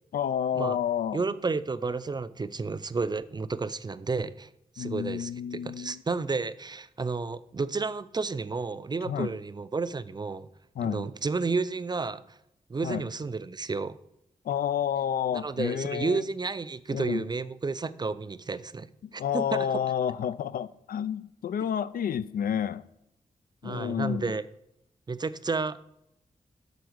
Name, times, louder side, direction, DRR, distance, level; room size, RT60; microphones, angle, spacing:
voice 1, 0.1-1.2 4.8-6.0 9.0-9.3 10.8-11.1 12.8-13.1 14.4-16.2 16.9-17.3 19.0-22.9 23.6-24.4, left 9 dB, 85° left, 0.4 m, -30 dB
voice 2, 1.1-4.5 4.8-10.5 10.8-12.4 12.7-14.0 15.3-18.9 19.1-19.7 23.6-24.4 25.1-25.8, right 4 dB, 30° right, 0.4 m, -31 dB
8.1 x 3.9 x 6.4 m
cardioid pair, 65°, 14 cm